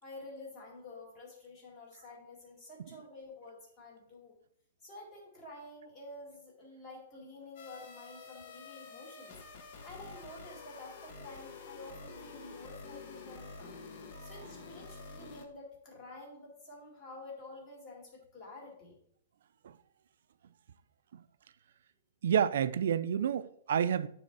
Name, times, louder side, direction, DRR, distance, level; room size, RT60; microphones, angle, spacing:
voice 1, 0.0-4.4 4.8-9.4 9.8-13.8 14.2-19.0, left 2 dB, 20° left, 2.2 m, -50 dB
sound 1, 7.6-15.5, left 4 dB, 45° left, 0.9 m, -48 dB
voice 2, 22.2-24.1, right 8 dB, 65° right, 0.4 m, -29 dB
9.6 x 3.5 x 4.6 m
hypercardioid pair, 170°, 0 cm